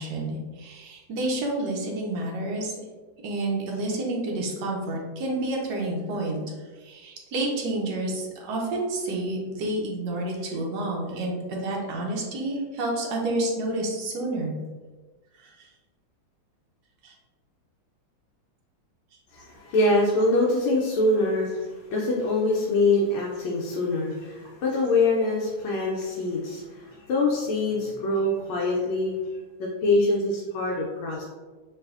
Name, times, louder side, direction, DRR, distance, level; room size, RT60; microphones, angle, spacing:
voice 1, 0.0-2.7 3.2-6.4 6.8-14.5 15.4-15.7 17.0-17.1, right 2 dB, 65° right, -1 dB, 1.1 m, -29 dB
voice 2, 19.3-29.3 29.6-31.2, left 2 dB, 80° left, -4 dB, 1.4 m, -24 dB
3.3 x 3.1 x 2.4 m, 1.3 s
omnidirectional pair, 2.2 m